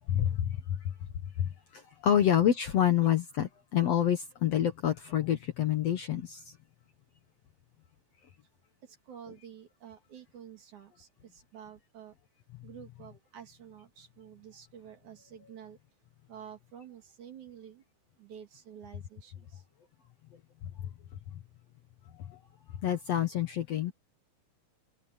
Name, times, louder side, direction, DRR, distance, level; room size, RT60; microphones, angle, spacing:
voice 1, 0.1-0.9 1.4-6.6 20.6-20.7 22.2-22.4 22.8-23.9, left 10 dB, 60° left, 1.9 m, -28 dB
voice 2, 8.8-12.1 12.6-15.8 16.3-17.8 18.2-19.6, right 9 dB, 60° right, 4.0 m, -50 dB
omnidirectional pair, 4.0 m